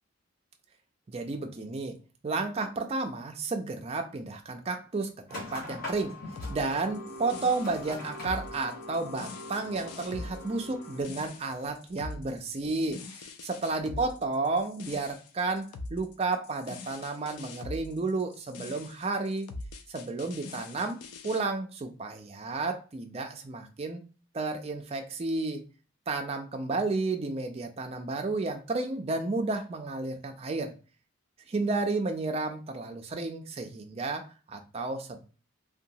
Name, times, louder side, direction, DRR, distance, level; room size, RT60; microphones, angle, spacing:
voice 1, 1.1-2.0 2.2-6.2 6.5-19.5 19.9-21.0 21.2-24.0 24.3-25.7 26.1-30.7 31.5-35.3, right 3 dB, 25° right, 5 dB, 0.3 m, -32 dB
sound 1, 5.3-11.0, left 2 dB, 40° left, 1.1 m, -42 dB
sound 2, 6.4-21.4, left 2 dB, 90° left, 0.4 m, -43 dB
2.8 x 2.2 x 2.6 m, 0.35 s
head